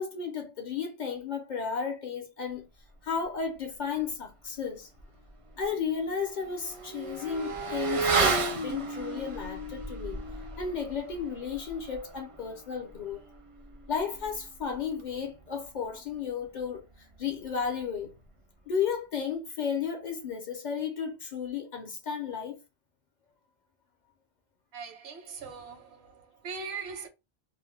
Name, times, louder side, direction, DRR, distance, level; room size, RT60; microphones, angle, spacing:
voice 1, 0.0-2.7 3.0-4.9 5.6-10.2 10.6-13.2 13.9-16.8 17.2-18.1 18.7-22.6, left 6 dB, 55° left, 0.6 m, -33 dB
Motorcycle / Accelerating revving vroom, 5.0-5.1 5.5-15.5 15.7-15.9, right 3 dB, 45° right, 0.4 m, -34 dB
voice 2, 24.7-27.1, right 5 dB, 85° right, 0.9 m, -40 dB
2.4 x 2.1 x 3.2 m
omnidirectional pair, 1.1 m